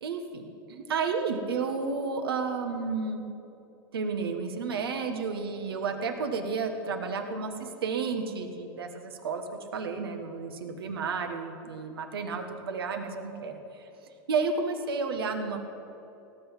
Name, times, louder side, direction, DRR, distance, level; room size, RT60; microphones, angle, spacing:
voice 1, 0.0-3.2 3.9-9.4 9.7-13.9 14.3-15.6, right 4 dB, 90° right, 6 dB, 1.5 m, -32 dB
17.5 x 6.2 x 8.9 m, 2.9 s
hypercardioid pair, 105°, 12 cm